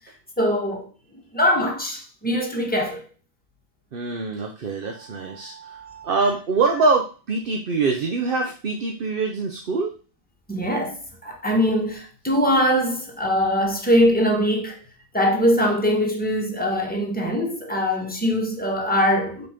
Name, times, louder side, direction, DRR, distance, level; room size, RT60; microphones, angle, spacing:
voice 1, 0.4-0.9 1.1-3.0 5.0-6.1 10.5-14.8 15.1-19.5, equal, 5° left, 1.4 m, -22 dB
voice 2, 3.9-9.9, right 3 dB, 45° right, 0.8 m, -24 dB
6.7 x 4.2 x 5.1 m
omnidirectional pair, 1.5 m